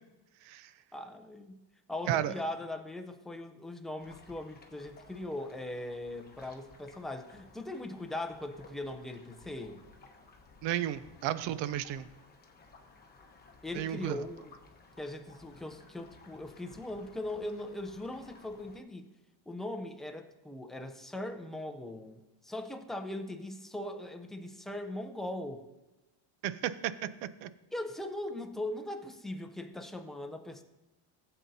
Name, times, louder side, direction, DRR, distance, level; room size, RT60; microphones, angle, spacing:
voice 1, 0.4-0.7 2.1-2.4 10.6-12.1 13.7-14.2 26.4-27.5, right 11 dB, 65° right, 14 dB, 0.7 m, -33 dB
voice 2, 0.9-1.5 1.9-9.8 13.6-14.5 15.0-19.1 19.5-25.6 27.7-30.6, left 1 dB, ahead, 4 dB, 0.5 m, -40 dB
sound 1, 4.0-18.8, left 3 dB, 20° left, 1.1 m, -57 dB
16.0 x 7.9 x 2.7 m, 1.1 s
cardioid pair, 145°, 47 cm